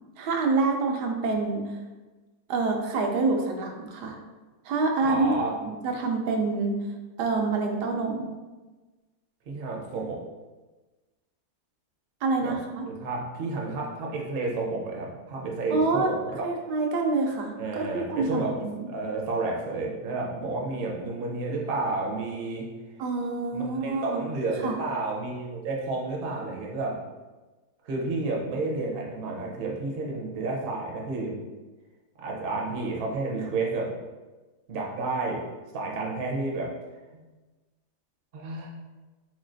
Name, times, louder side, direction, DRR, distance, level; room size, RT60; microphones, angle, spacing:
voice 1, 0.2-1.6 2.5-4.2 4.7-5.3 5.7-6.8 7.2-8.4 12.2-12.8 15.7-16.1 16.4-18.9 23.0-24.2 24.6-24.8, right 3 dB, 90° right, 2 dB, 1.2 m, -27 dB
voice 2, 5.0-5.5 9.5-10.2 12.4-12.5 12.9-16.4 17.6-18.6 18.9-22.7 23.5-27.0 27.8-31.4 32.2-33.9 34.7-35.5 35.7-36.7 37.1-37.2 38.3-38.8, right 3 dB, 55° right, -1 dB, 0.6 m, -31 dB
3.7 x 3.2 x 2.5 m, 1.2 s
omnidirectional pair, 1.7 m